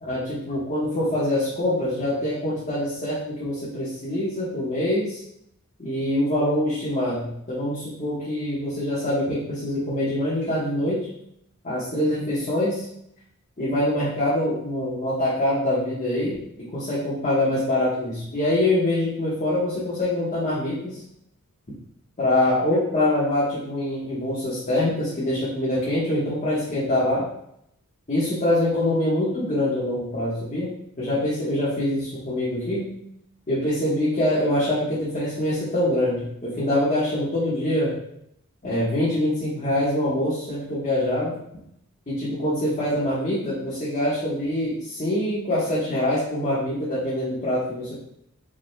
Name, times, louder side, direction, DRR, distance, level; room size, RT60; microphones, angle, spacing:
voice 1, 0.0-5.2 5.8-11.1 11.6-12.8 13.6-21.0 22.2-27.2 28.1-32.9 33.5-38.0 38.6-41.4 42.1-47.9, left 1 dB, 35° left, -10 dB, 1.4 m, -24 dB
5.4 x 4.0 x 2.3 m, 0.74 s
head